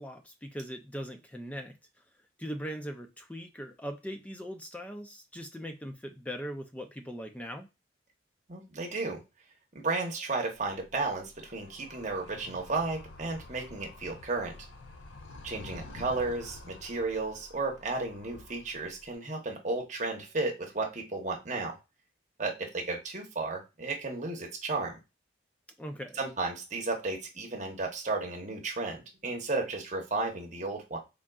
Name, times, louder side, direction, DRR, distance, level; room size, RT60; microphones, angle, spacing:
voice 1, 0.0-1.8 2.4-7.7 25.8-26.2, equal, 5° left, 0.4 m, -40 dB
voice 2, 8.5-9.2 9.7-14.6 15.4-21.8 22.4-25.0 26.2-31.0, right 3 dB, 40° right, 0.9 m, -33 dB
Animal, 10.6-19.1, left 2 dB, 85° left, 0.6 m, -49 dB
3.7 x 3.6 x 2.3 m
head